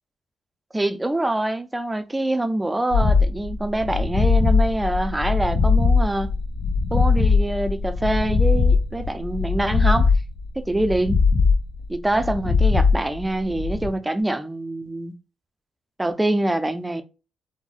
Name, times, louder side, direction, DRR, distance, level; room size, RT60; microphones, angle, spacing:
voice 1, 0.7-6.3 6.9-10.1 10.6-11.2 11.9-15.1 16.0-17.0, right 1 dB, 10° right, 0.4 m, -25 dB
sound 1, 2.9-13.9, left 4 dB, 65° left, 1.0 m, -20 dB
sound 2, 4.7-12.3, left 5 dB, 85° left, 0.7 m, -34 dB
4.0 x 2.1 x 2.5 m
cardioid pair, 90°, 0 cm